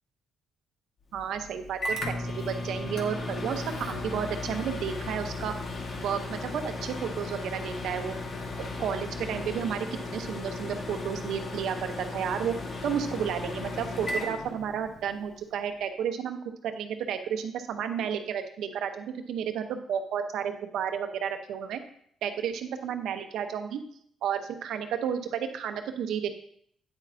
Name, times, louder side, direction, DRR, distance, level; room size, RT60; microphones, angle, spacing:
Microwave oven, 1.1-15.2, left 2 dB, 50° left, 1.4 m, -35 dB
voice 1, 1.1-5.5 6.0-8.1 8.8-12.5 12.8-16.4 16.6-21.8 22.2-23.8 24.2-26.3, right 8 dB, 80° right, 7 dB, 0.9 m, -32 dB
9.0 x 8.3 x 2.7 m, 0.65 s
cardioid pair, 90°, 0 cm